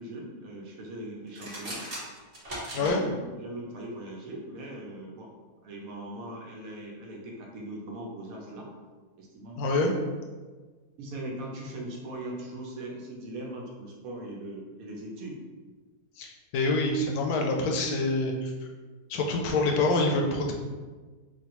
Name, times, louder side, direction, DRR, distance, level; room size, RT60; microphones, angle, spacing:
voice 1, 0.0-1.8 2.7-5.3 5.6-8.7 9.2-9.8 11.0-15.4, right 1 dB, 70° right, -1 dB, 1.0 m, -40 dB
sound 1, 1.3-3.0, equal, 35° right, 0.7 m, -38 dB
voice 2, 9.6-9.9 16.2-18.5 19.1-20.5, left 2 dB, 80° left, 1 dB, 1.1 m, -26 dB
3.3 x 2.5 x 2.9 m, 1.4 s
omnidirectional pair, 1.6 m